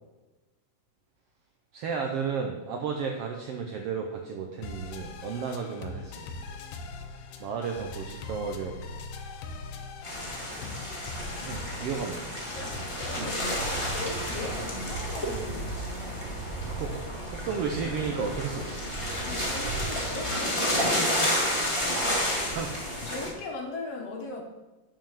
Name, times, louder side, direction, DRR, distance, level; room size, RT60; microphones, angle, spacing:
voice 1, 1.7-6.3 7.4-9.0 11.4-12.3 13.1-13.3 16.6-18.8 22.1-23.0, right 5 dB, 75° right, 3 dB, 1.4 m, -33 dB
sound 1, 4.6-14.2, left 4 dB, 85° left, 2.4 m, -41 dB
sound 2, 10.0-23.3, equal, 15° left, 1.1 m, -31 dB
voice 2, 12.5-16.2 19.0-21.3 22.9-24.4, left 3 dB, 60° left, 1 dB, 2.0 m, -39 dB
sound 3, 12.5-20.2, right 3 dB, 60° right, 1.9 m, -39 dB
7.5 x 5.5 x 7.2 m, 1.2 s
omnidirectional pair, 3.6 m